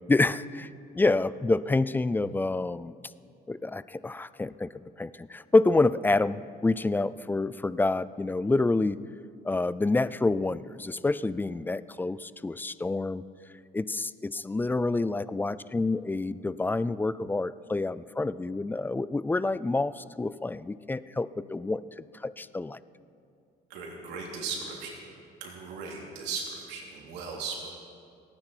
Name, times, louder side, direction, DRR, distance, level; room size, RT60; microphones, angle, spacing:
voice 1, 0.1-0.7 0.9-2.9 3.5-4.7 5.0-9.0 9.4-13.2 13.7-21.8 22.2-22.8, left 2 dB, 10° left, 17 dB, 0.3 m, -27 dB
voice 2, 23.7-25.0 25.4-27.7, right 5 dB, 90° right, -2 dB, 3.2 m, -37 dB
29.0 x 9.8 x 4.5 m, 2.4 s
cardioid pair, 110°, 17 cm